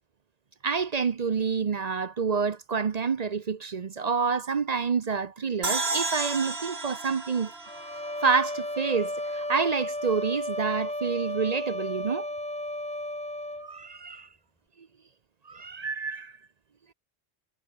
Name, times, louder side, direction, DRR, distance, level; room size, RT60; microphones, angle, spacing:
voice 1, 0.6-7.5 8.2-12.3 13.6-14.3 15.5-16.3, right 5 dB, 45° right, 0.8 m, -28 dB
sound 1, 5.6-8.9, right 3 dB, 80° right, 3.4 m, -33 dB
sound 2, 7.6-13.7, left 1 dB, 5° left, 0.9 m, -33 dB
omnidirectional pair, 1.0 m